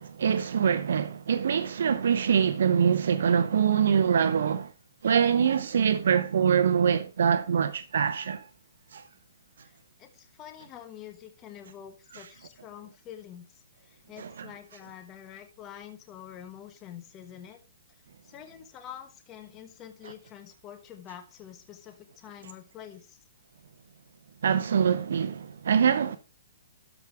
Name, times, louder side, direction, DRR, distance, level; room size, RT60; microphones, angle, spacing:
voice 1, 0.0-4.7 5.0-8.5 8.9-9.0 14.2-14.5 24.4-26.2, right 7 dB, 70° right, 0.7 m, -24 dB
voice 2, 9.6-17.6 18.2-23.2, left 10 dB, 20° left, 1.3 m, -46 dB
13.0 x 4.9 x 4.6 m
hypercardioid pair, 155°, 0 cm